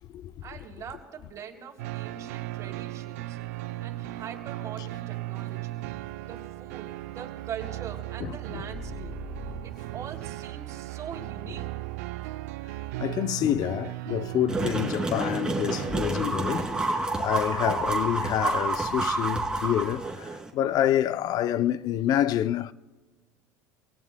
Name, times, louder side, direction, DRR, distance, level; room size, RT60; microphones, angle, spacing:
voice 1, 0.4-5.8 6.2-9.2 9.6-11.7, right 7 dB, 45° right, 3.0 m, -43 dB
sound 1, 1.8-16.0, right 16 dB, 85° right, 0.6 m, -37 dB
voice 2, 8.2-8.6 13.0-22.7, left 11 dB, 55° left, 0.6 m, -27 dB
sound 2, 8.7-10.3 15.8-18.9, left 4 dB, 25° left, 1.2 m, -43 dB
sound 3, 14.5-20.5, right 2 dB, 10° right, 2.8 m, -29 dB
26.5 x 18.0 x 2.3 m
supercardioid pair, 100°, 8 cm